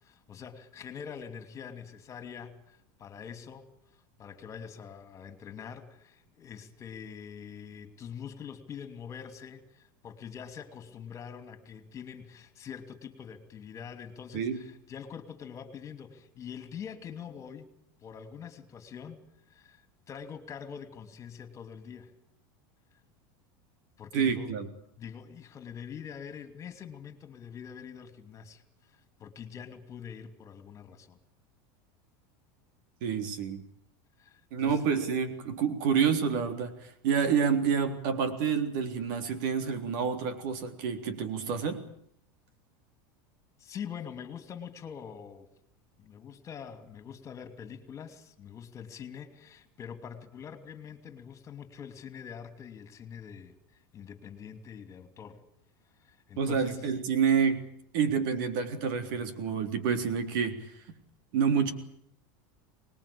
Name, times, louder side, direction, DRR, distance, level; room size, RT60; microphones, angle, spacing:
voice 1, 0.0-3.7 3.9-17.7 18.0-19.2 19.5-22.1 24.0-24.5 25.0-31.2 34.2-34.8 43.6-45.5 46.0-55.4 56.0-56.8, left 7 dB, 25° left, 10 dB, 2.9 m, -44 dB
voice 2, 24.1-24.7 33.0-33.6 34.5-41.8 56.4-57.6 57.9-60.7 61.3-61.7, right 6 dB, 65° right, 9 dB, 3.7 m, -28 dB
25.0 x 20.5 x 8.7 m, 0.69 s
supercardioid pair, 145°, 11 cm